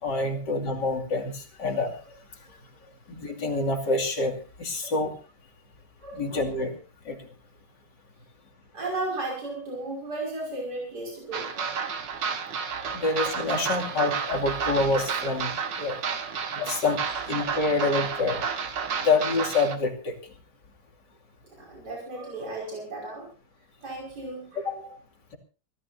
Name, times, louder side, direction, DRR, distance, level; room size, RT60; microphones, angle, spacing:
voice 1, 0.0-1.9 3.1-4.3 4.6-5.1 6.1-6.7 7.1-7.2 12.9-15.5 15.8-16.0 16.5-17.0 17.3-18.4 19.0-20.2 24.6-24.7, left 3 dB, 75° left, 2 dB, 3.3 m, -26 dB
voice 2, 6.0-6.4 8.7-11.8 12.8-13.0 16.1-16.2 18.8-18.9 21.6-23.3 23.8-24.9, right 2 dB, 65° right, -2 dB, 6.1 m, -35 dB
sound 1, 11.3-19.8, right 6 dB, 85° right, 2.3 m, -31 dB
24.5 x 15.5 x 2.7 m, 0.34 s
omnidirectional pair, 1.9 m